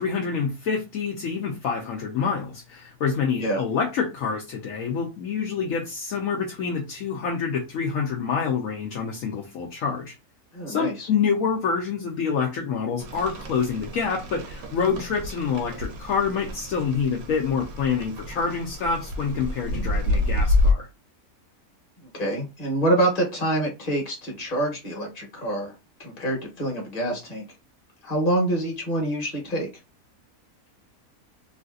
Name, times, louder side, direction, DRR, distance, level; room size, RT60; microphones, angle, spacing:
voice 1, 0.0-10.1 10.7-20.9, left 6 dB, 70° left, 1.0 m, -27 dB
voice 2, 10.5-11.1 19.7-19.8 22.1-25.7 26.0-27.4 28.0-29.7, right 1 dB, 30° left, 1.1 m, -26 dB
Rain, 13.0-20.7, left 2 dB, 75° right, 1.2 m, -28 dB
3.1 x 2.6 x 2.4 m
omnidirectional pair, 1.6 m